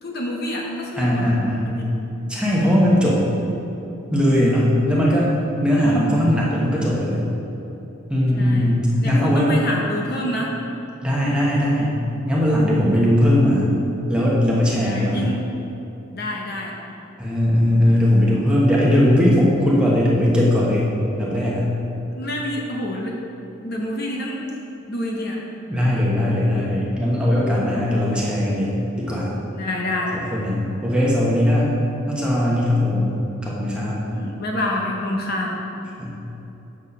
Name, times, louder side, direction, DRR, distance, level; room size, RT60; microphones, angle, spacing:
voice 1, 0.0-1.3 1.7-1.9 5.8-6.2 8.4-8.7 9.0-10.5 14.8-15.4 16.1-16.7 22.1-23.1 23.6-24.4 24.9-25.4 29.5-30.2 34.1-35.5, left 1 dB, 50° left, -1 dB, 0.8 m, -27 dB
voice 2, 1.0-1.7 2.3-3.2 4.1-5.3 5.6-7.2 8.1-9.5 11.0-12.0 12.2-13.7 14.1-15.3 17.2-20.9 21.2-21.7 25.7-29.3 30.1-31.7 32.1-34.0 36.0-36.1, left 1 dB, 5° right, -6 dB, 1.0 m, -19 dB
7.2 x 4.5 x 5.4 m, 3.0 s
head